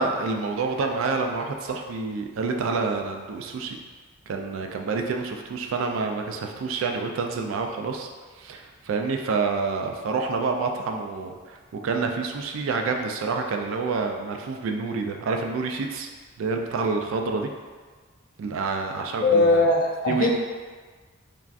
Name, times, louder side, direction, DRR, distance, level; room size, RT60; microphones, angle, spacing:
voice 1, 0.0-3.8 4.3-8.1 8.4-16.1 16.4-17.5 18.4-19.7 20.1-20.3, right 4 dB, 80° right, 3 dB, 0.3 m, -28 dB
voice 2, 19.2-20.3, left 2 dB, 45° left, -1 dB, 0.4 m, -19 dB
3.3 x 2.5 x 2.4 m, 1.4 s
head